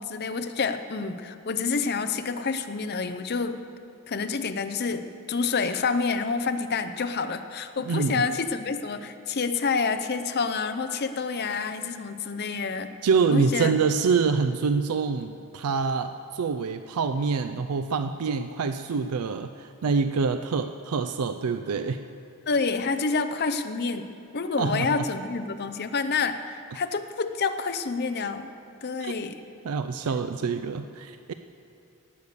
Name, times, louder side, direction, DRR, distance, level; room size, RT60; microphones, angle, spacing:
voice 1, 0.0-3.6 4.1-12.9 13.3-13.7 22.5-24.1 24.3-28.5 28.8-29.4, left 4 dB, 45° left, 9 dB, 0.6 m, -28 dB
voice 2, 7.9-8.2 13.0-22.0 24.6-25.0 29.0-29.1 29.6-31.3, right 5 dB, 85° right, 9 dB, 0.4 m, -26 dB
18.0 x 6.6 x 6.8 m, 2.7 s
head